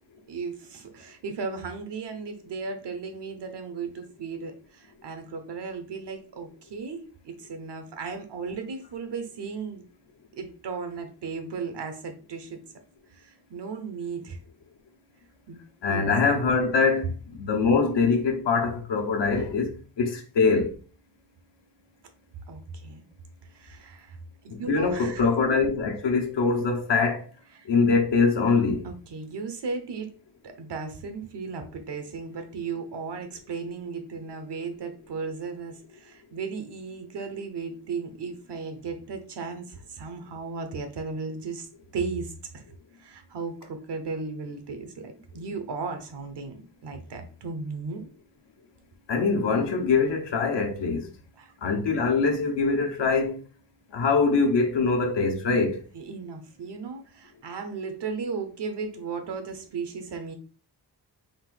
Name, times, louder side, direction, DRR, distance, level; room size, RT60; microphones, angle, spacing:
voice 1, 0.3-9.8 10.3-12.6 13.1-14.4 15.5-15.6 15.9-16.1 22.5-23.1 23.5-24.2 24.4-25.3 27.5-27.7 28.8-30.1 30.4-41.7 41.9-42.6 43.0-48.0 51.4-51.5 55.9-60.4, right 4 dB, 75° right, 1.0 m, -35 dB
voice 2, 15.8-20.8 24.5-27.3 27.6-28.9 49.1-51.1 51.6-53.4 53.9-55.8, left 4 dB, 85° left, 1.1 m, -23 dB
3.9 x 2.6 x 3.9 m
cardioid pair, 85°, 42 cm